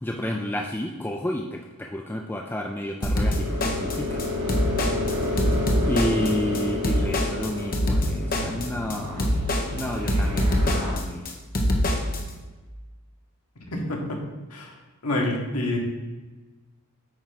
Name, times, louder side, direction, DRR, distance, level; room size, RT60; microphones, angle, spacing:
voice 1, 0.0-4.2 5.9-9.3 9.7-11.2, left 1 dB, 10° left, 2 dB, 0.4 m, -30 dB
sound 1, 3.0-12.2, equal, 40° left, 1.0 m, -25 dB
sound 2, 3.1-10.9, left 2 dB, 85° right, 2.6 m, -30 dB
voice 2, 13.7-14.2 14.5-14.7 15.0-15.8, left 1 dB, 85° left, 0 dB, 1.7 m, -27 dB
8.9 x 3.5 x 5.9 m, 1.2 s
head